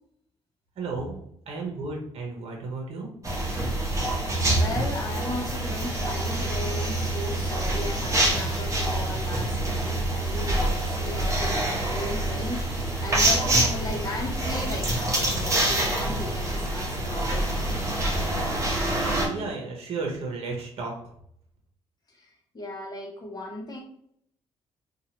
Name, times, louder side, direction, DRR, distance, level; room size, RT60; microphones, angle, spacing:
voice 1, 0.8-1.2 1.5-3.1 19.3-20.9, right 3 dB, 60° right, 0 dB, 0.9 m, -33 dB
sound 1, 3.2-19.3, right 1 dB, 25° right, 0.9 m, -26 dB
voice 2, 4.6-17.5 18.2-18.3 22.1-23.8, left 1 dB, 35° left, -1 dB, 0.9 m, -36 dB
2.8 x 2.3 x 2.9 m, 0.69 s
cardioid pair, 90°, 11 cm